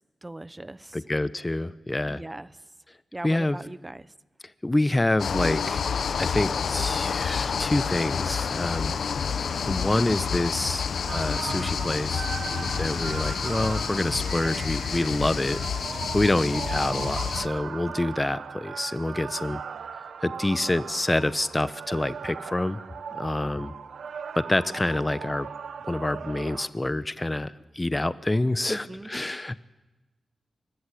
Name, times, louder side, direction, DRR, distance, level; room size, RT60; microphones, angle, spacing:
voice 1, 0.2-1.0 2.1-2.5 3.1-4.1 12.4-12.7 28.7-29.1, right 1 dB, 20° right, 15 dB, 0.9 m, -39 dB
voice 2, 0.9-2.2 3.2-3.6 4.6-5.9 6.2-9.0 9.7-12.3 12.8-15.6 16.1-19.6 20.2-22.8 23.1-23.7 24.4-25.5 25.9-29.6, left 1 dB, 20° left, 13 dB, 1.0 m, -27 dB
sound 1, 5.2-17.5, left 6 dB, 80° left, 0.9 m, -29 dB
sound 2, 11.1-26.7, right 6 dB, 90° right, 1.1 m, -38 dB
24.0 x 21.5 x 8.5 m, 1.1 s
cardioid pair, 65°, 0 cm